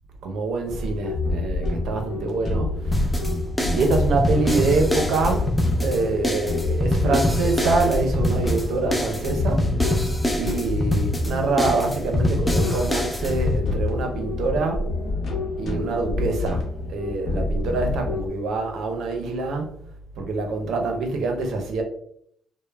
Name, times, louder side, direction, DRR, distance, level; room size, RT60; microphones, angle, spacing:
voice 1, 0.2-3.3 3.7-9.7 10.4-14.9 15.6-19.8 20.2-21.8, right 3 dB, 75° right, 0.5 m, -25 dB
sound 1, 0.7-18.3, left 2 dB, 55° left, 0.8 m, -27 dB
sound 2, 2.9-13.6, left 1 dB, 10° left, 0.4 m, -25 dB
3.0 x 2.0 x 2.2 m
cardioid pair, 90°, 0 cm